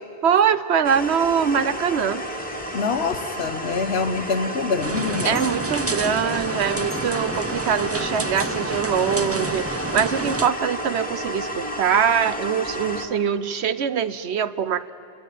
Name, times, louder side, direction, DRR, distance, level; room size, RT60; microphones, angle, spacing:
voice 1, 0.2-2.2 5.2-14.9, right 7 dB, 75° right, 14 dB, 1.1 m, -23 dB
sound 1, 0.8-13.1, equal, 10° left, 2.1 m, -31 dB
voice 2, 2.7-5.4, left 4 dB, 70° left, 10 dB, 1.3 m, -25 dB
sound 2, 4.8-10.5, right 2 dB, 20° right, 0.5 m, -29 dB
sound 3, 5.4-5.6 6.9-7.2 8.4-8.6, left 3 dB, 45° right, 3.3 m, -42 dB
28.5 x 22.0 x 9.2 m, 2.8 s
omnidirectional pair, 1.1 m